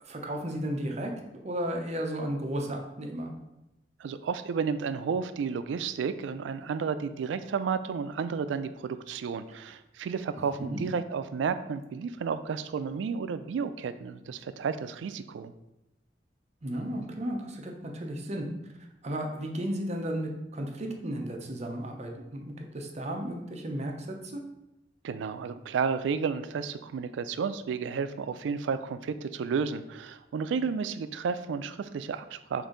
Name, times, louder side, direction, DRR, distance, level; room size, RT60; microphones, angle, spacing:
voice 1, 0.1-3.3 10.6-10.8 16.6-18.5 19.0-24.4, right 1 dB, 40° right, 2 dB, 0.7 m, -34 dB
voice 2, 4.0-15.5 25.0-32.7, right 6 dB, 85° right, 12 dB, 0.3 m, -32 dB
5.4 x 2.6 x 3.8 m, 0.91 s
head